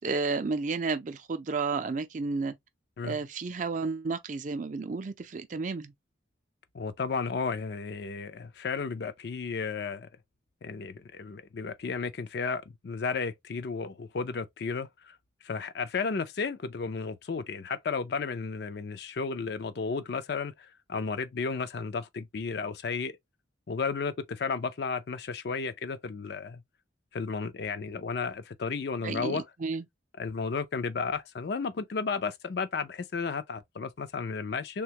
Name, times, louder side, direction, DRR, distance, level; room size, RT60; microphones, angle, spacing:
voice 1, 0.0-2.5 3.0-5.9 29.0-29.9, right 4 dB, 40° right, 0.4 m, -32 dB
voice 2, 6.7-10.1 10.6-15.2 15.4-23.2 23.7-26.6 27.1-29.4 30.2-34.8, left 5 dB, 55° left, 0.4 m, -33 dB
3.4 x 2.2 x 2.8 m
head